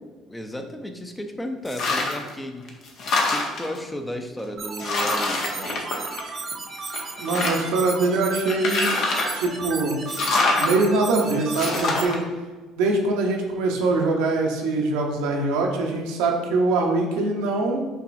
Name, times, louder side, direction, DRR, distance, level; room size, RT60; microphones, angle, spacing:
voice 1, 0.3-2.7 3.3-5.8, equal, 10° left, 5 dB, 0.5 m, -34 dB
sound 1, 1.7-2.3 2.7-3.8 4.4-4.5 4.8-6.5 6.9-7.8 8.5-9.4 10.1-10.7 11.5-12.2, left 3 dB, 60° left, 0.8 m, -25 dB
sound 2, 4.6-12.1, right 4 dB, 40° right, 0.6 m, -34 dB
voice 2, 7.2-8.9 9.3-10.0 10.6-12.2 12.8-17.8, right 3 dB, 80° right, 1 dB, 0.7 m, -23 dB
5.9 x 3.0 x 2.6 m, 1.3 s
hypercardioid pair, 65°, 0 cm